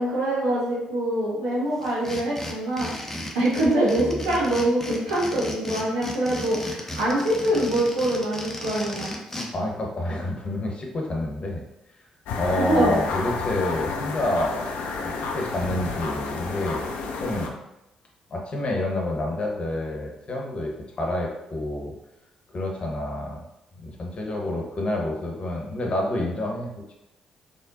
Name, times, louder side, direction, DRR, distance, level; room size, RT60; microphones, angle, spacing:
voice 1, 0.0-2.9 3.3-9.2 12.6-13.0, right 1 dB, 75° right, -7 dB, 1.2 m, -24 dB
sound 1, 1.8-9.5, equal, 10° left, 0.9 m, -35 dB
voice 2, 9.5-11.6 12.4-16.9 17.2-17.6 18.3-21.9 22.5-23.4 23.8-26.7, left 1 dB, 40° left, 0 dB, 1.1 m, -28 dB
sound 2, 12.3-17.5, left 4 dB, 65° left, 0.5 m, -30 dB
4.2 x 3.5 x 2.6 m, 0.89 s
figure-of-eight pair, 40°, 3 cm